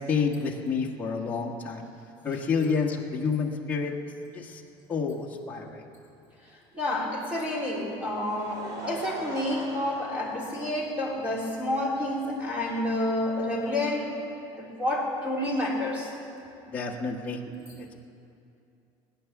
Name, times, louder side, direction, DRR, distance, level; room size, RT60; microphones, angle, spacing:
voice 1, 0.1-1.8 2.2-3.9 4.3-4.6 4.9-5.8 16.7-17.4 17.8-17.9, left 5 dB, 15° left, -2 dB, 1.3 m, -29 dB
voice 2, 6.7-14.1 14.5-16.1 17.5-17.6, left 1 dB, 10° right, -4 dB, 3.2 m, -29 dB
Laughter, 7.9-11.1 11.9-12.0 13.5-13.6, right 1 dB, 35° right, 2.7 m, -40 dB
20.0 x 9.8 x 7.2 m, 2.7 s
cardioid pair, 170°, 11 cm